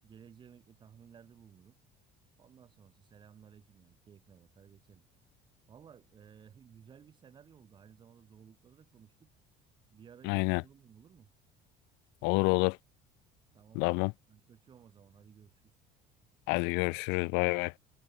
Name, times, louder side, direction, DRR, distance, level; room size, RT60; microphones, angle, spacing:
voice 1, 0.0-1.8 2.4-5.0 5.7-9.3 9.9-11.3 13.5-15.7, right 8 dB, 25° right, 7.2 m, -57 dB
voice 2, 10.2-10.6 12.2-12.8 13.8-14.1 16.5-17.7, left 29 dB, 75° left, 0.6 m, -28 dB
cardioid pair, 175°, 18 cm